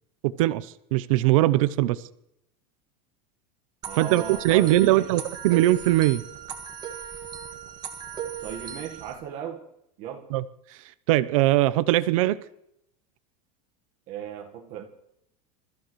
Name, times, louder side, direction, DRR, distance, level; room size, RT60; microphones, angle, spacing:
voice 1, 0.2-2.0 4.0-6.2 10.3-10.4 11.1-12.4, right 15 dB, 60° right, 15 dB, 0.7 m, -21 dB
sound 1, 3.8-9.1, right 8 dB, 20° right, 1.5 m, -37 dB
voice 2, 3.9-5.1 8.4-9.6 10.0-10.3 14.1-14.8, right 9 dB, 40° right, 2 dB, 1.5 m, -36 dB
28.0 x 14.5 x 3.2 m, 0.79 s
supercardioid pair, 180°, 19 cm